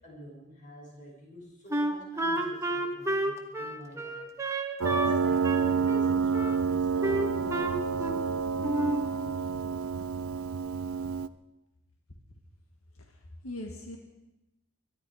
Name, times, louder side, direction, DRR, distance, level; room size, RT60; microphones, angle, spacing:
voice 1, 0.0-4.2 4.7-9.8, equal, 35° left, -2 dB, 5.5 m, -49 dB
Wind instrument woodwind instrument, 1.7-5.2 5.4-6.6 7.0-8.3 8.6-9.1, right 1 dB, 15° right, 1.2 m, -30 dB
Piano, 4.8-11.3, right 5 dB, 85° right, 0.6 m, -29 dB
voice 2, 13.0-14.0, left 1 dB, 85° left, 3 dB, 1.7 m, -41 dB
22.5 x 12.0 x 4.8 m, 0.96 s
head